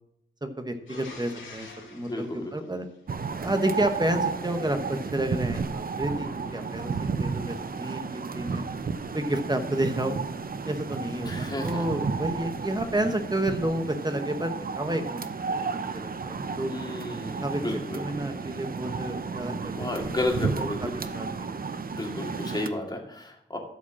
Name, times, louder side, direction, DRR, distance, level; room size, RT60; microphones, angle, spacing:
voice 1, 0.4-1.7 2.0-2.3 2.5-2.9 3.4-8.6 9.1-10.2 10.6-16.7 17.4-20.9 21.1-21.6, right 1 dB, 20° right, 6 dB, 1.1 m, -30 dB
sound 1, 0.9-3.6 6.0-7.4, left 3 dB, 75° left, 2.8 m, -47 dB
voice 2, 1.9-2.5 11.3-11.9 16.6-18.2 19.5-21.1 21.9-23.6, left 1 dB, 20° left, 1 dB, 2.1 m, -33 dB
sound 2, 3.1-22.7, right 5 dB, 45° right, 0.6 m, -33 dB
12.5 x 5.1 x 7.3 m, 0.77 s
wide cardioid pair, 100°, 20 cm